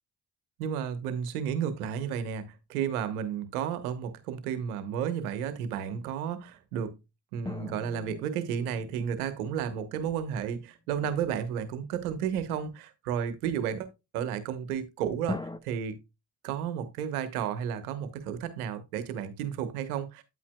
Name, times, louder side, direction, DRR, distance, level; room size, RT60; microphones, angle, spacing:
voice 1, 0.6-7.0 7.3-13.9 14.1-16.0 16.4-20.2, right 8 dB, 90° right, 1.2 m, -32 dB
sound 1, 7.4-10.4 15.3-15.6, left 2 dB, 10° left, 0.9 m, -41 dB
9.5 x 8.5 x 2.3 m
hypercardioid pair, 45°, 43 cm